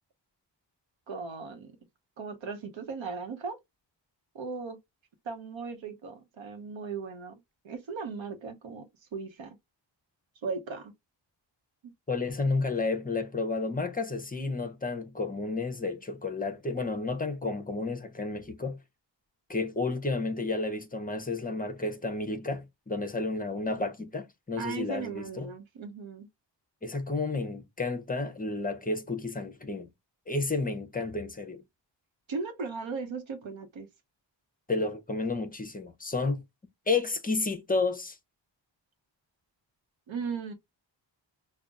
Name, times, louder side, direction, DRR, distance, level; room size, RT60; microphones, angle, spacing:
voice 1, 1.1-1.7 2.2-3.6 4.3-4.8 5.2-7.4 7.6-9.6 10.4-10.9 24.6-26.3 32.3-33.9 40.1-40.5, right 5 dB, 90° right, 1.0 m, -37 dB
voice 2, 12.1-18.8 19.5-25.5 26.8-29.9 30.3-31.6 34.7-36.4 36.9-38.2, left 3 dB, 20° left, 0.6 m, -31 dB
5.3 x 2.3 x 2.3 m
wide cardioid pair, 130°, 44 cm